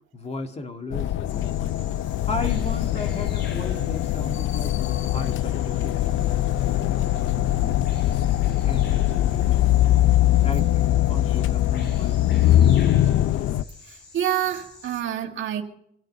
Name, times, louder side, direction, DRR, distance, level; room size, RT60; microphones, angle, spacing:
voice 1, 0.1-1.7 2.2-4.8 5.1-8.1 8.6-9.9 10.4-13.3, left 2 dB, 30° left, 1.9 m, -36 dB
sound 1, 0.9-13.6, left 13 dB, 80° left, 0.6 m, -22 dB
Bird vocalization bird call bird song, 1.3-15.0, left 3 dB, 65° left, 4.1 m, -47 dB
voice 2, 13.8-15.6, right 10 dB, 75° right, 2.1 m, -27 dB
25.5 x 9.1 x 5.5 m
cardioid pair, 90°, 20 cm